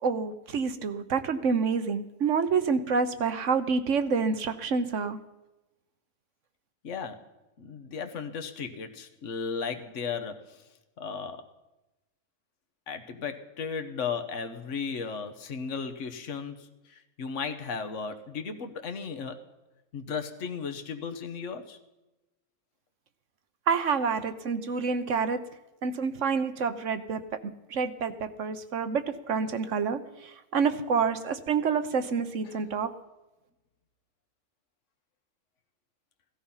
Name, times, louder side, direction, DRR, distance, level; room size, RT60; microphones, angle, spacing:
voice 1, 0.0-5.2 23.7-25.4 25.8-30.0 30.5-32.9, right 5 dB, 60° right, 10 dB, 1.3 m, -28 dB
voice 2, 6.8-7.3 7.6-10.7 11.0-11.5 12.9-19.4 19.9-21.8 32.4-32.6, left 5 dB, 60° left, 7 dB, 1.5 m, -35 dB
17.5 x 13.5 x 5.7 m, 1.0 s
omnidirectional pair, 1.5 m